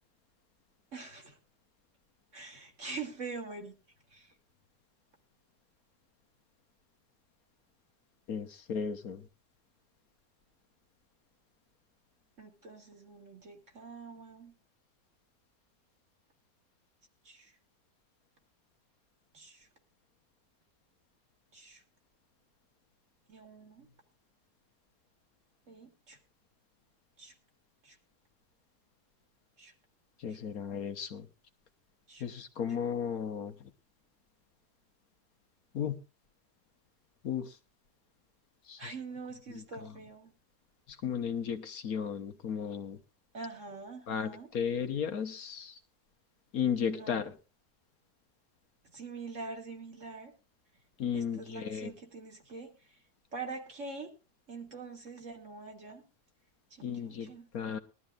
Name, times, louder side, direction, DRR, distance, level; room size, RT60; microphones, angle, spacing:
voice 1, 0.9-1.4 2.3-3.7 4.1-4.3 12.4-14.5 17.2-17.5 19.3-19.7 21.5-21.8 23.3-23.9 25.7-26.2 27.2-27.3 27.8-28.0 29.6-29.7 30.3-30.4 32.1-32.2 38.8-40.3 43.3-44.5 46.9-47.3 48.9-50.3 51.1-52.7 53.3-54.1 54.5-56.0 56.7-57.5, right 4 dB, 50° right, 3 dB, 2.6 m, -44 dB
voice 2, 8.3-9.2 30.2-31.3 32.2-33.5 35.7-36.0 37.2-37.5 38.7-38.9 39.5-39.9 41.0-43.0 44.1-45.8 46.5-47.3 51.0-51.9 56.8-57.8, left 7 dB, 65° left, 8 dB, 1.5 m, -35 dB
21.0 x 12.5 x 2.4 m, 0.29 s
omnidirectional pair, 1.7 m